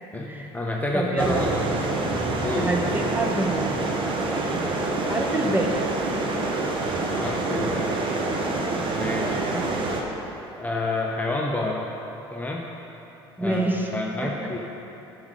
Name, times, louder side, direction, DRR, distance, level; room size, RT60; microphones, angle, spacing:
voice 1, 0.1-1.5 2.4-2.7 7.2-8.0 8.9-9.4 10.6-11.9 12.3-12.7 13.4-13.6 13.9-14.6, left 2 dB, 10° left, -1 dB, 0.7 m, -28 dB
voice 2, 0.9-1.5 2.6-3.7 5.1-5.7 13.4-13.9 14.2-14.5, right 2 dB, 15° right, 1 dB, 1.0 m, -26 dB
sound 1, 1.2-10.0, right 2 dB, 40° right, 1.0 m, -26 dB
7.2 x 5.3 x 4.8 m, 3.0 s
hypercardioid pair, 65°, 14 cm